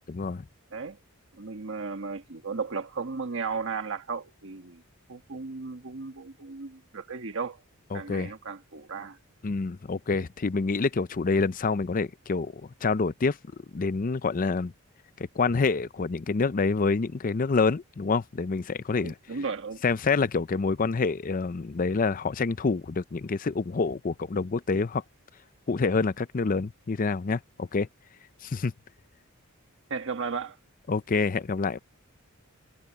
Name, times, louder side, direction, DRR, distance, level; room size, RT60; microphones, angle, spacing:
voice 1, 0.1-0.4 7.9-8.3 9.4-13.4 13.7-14.7 15.4-19.1 19.8-25.0 25.7-27.9 28.4-28.7 30.9-31.8, left 4 dB, 40° left, 0.5 m, -27 dB
voice 2, 1.4-4.8 5.1-7.6 7.9-9.2 19.0-19.8 29.9-30.6, right 5 dB, 60° right, 1.4 m, -35 dB
head